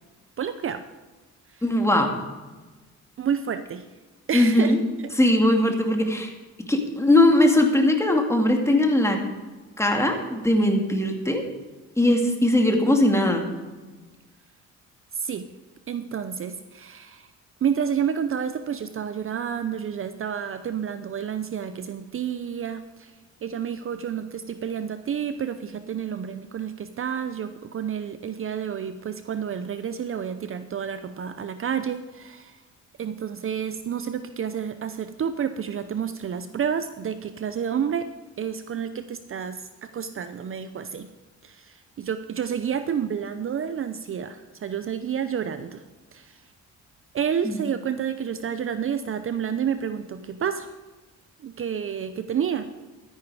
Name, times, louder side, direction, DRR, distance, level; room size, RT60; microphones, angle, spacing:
voice 1, 0.4-0.8 1.5-1.6 3.2-3.9 4.3-4.8 5.0-5.1 15.1-15.4 15.9-17.3 17.6-23.1 23.4-32.6 33.0-38.1 38.4-41.1 41.4-45.8 46.1-46.4 47.1-50.7 51.4-52.7, right 8 dB, 45° right, 11 dB, 0.7 m, -30 dB
voice 2, 1.6-2.1 4.3-4.8 5.2-6.3 6.7-9.2 9.8-11.4 12.0-13.5 47.4-47.6, left 1 dB, 10° left, 3 dB, 2.2 m, -20 dB
12.5 x 10.0 x 4.9 m, 1.3 s
cardioid pair, 90°, 30 cm